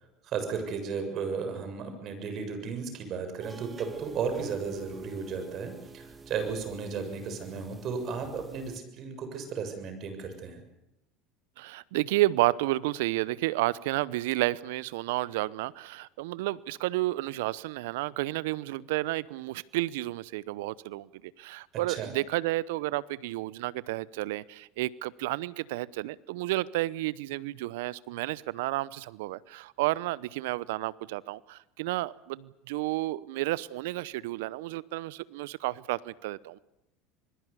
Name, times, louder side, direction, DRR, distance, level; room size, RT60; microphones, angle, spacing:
voice 1, 0.2-10.6 21.9-22.1, right 5 dB, 50° right, 7 dB, 7.1 m, -34 dB
sound 1, 3.4-8.8, right 3 dB, 25° right, 2.3 m, -48 dB
voice 2, 11.6-21.1 21.4-36.6, right 18 dB, 75° right, 21 dB, 0.8 m, -31 dB
26.5 x 21.5 x 7.0 m, 0.88 s
hypercardioid pair, 80°, 0 cm